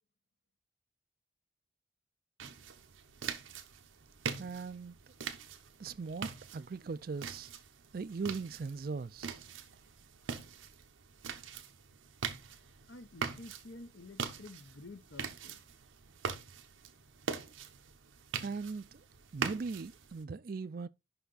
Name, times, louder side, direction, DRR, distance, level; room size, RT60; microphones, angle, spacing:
sound 1, 2.4-20.2, right 6 dB, 85° right, 0.9 m, -43 dB
voice 1, 4.4-5.0 5.8-7.5 7.9-9.4 18.4-19.0 19.3-20.9, right 4 dB, 50° right, 0.4 m, -39 dB
voice 2, 12.9-15.6, left 2 dB, 70° left, 0.9 m, -50 dB
5.7 x 5.7 x 4.0 m
head